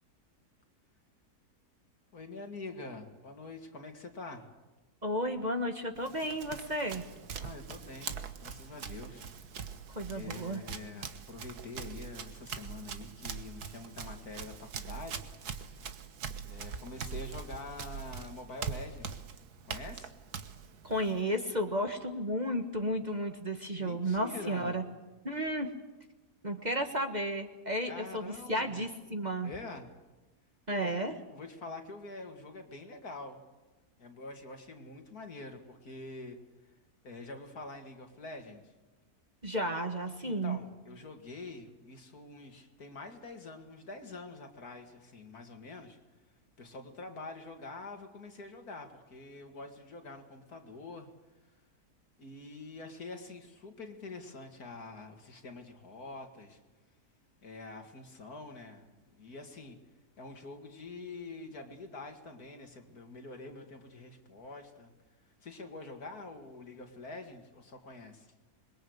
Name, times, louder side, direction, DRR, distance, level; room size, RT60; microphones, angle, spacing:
voice 1, 2.1-4.5 7.4-9.2 10.1-15.3 16.4-19.2 19.6-20.1 23.8-24.8 27.9-28.8 29.4-29.9 30.7-31.0 31.3-33.4 34.0-36.4 36.6-36.7 37.0-38.7 40.3-46.0 46.6-51.1 52.2-56.6 57.4-59.8 60.2-64.9 65.4-68.3, left 3 dB, 65° left, 4 dB, 2.8 m, -46 dB
voice 2, 5.0-7.0 9.9-10.6 20.8-24.8 25.2-25.7 26.4-29.5 30.7-31.1 39.4-40.6, equal, 25° right, 5 dB, 1.5 m, -33 dB
Run, 5.9-21.2, right 6 dB, 70° right, 1.8 m, -43 dB
26.5 x 22.0 x 8.0 m, 1.1 s
omnidirectional pair, 1.7 m